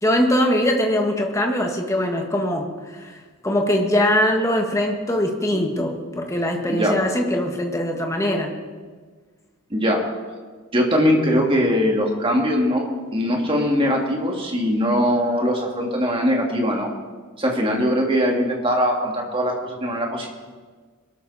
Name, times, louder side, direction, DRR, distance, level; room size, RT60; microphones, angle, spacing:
voice 1, 0.0-8.5, left 1 dB, 15° left, 2 dB, 1.7 m, -22 dB
voice 2, 9.7-10.0 10.7-12.8 13.1-16.9 17.4-20.4, equal, 25° right, 0 dB, 2.4 m, -21 dB
22.0 x 13.0 x 4.3 m, 1.5 s
head